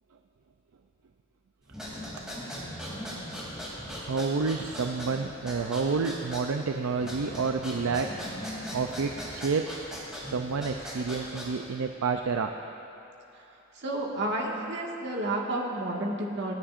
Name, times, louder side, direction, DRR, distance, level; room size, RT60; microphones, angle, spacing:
sound 1, 1.7-11.7, equal, 5° right, 2.9 m, -39 dB
voice 1, 4.1-8.2 8.7-9.7 10.3-12.5, right 4 dB, 75° right, 4 dB, 0.5 m, -29 dB
voice 2, 13.7-16.5, right 1 dB, 55° right, -2 dB, 1.8 m, -31 dB
28.5 x 10.0 x 2.6 m, 2.9 s
head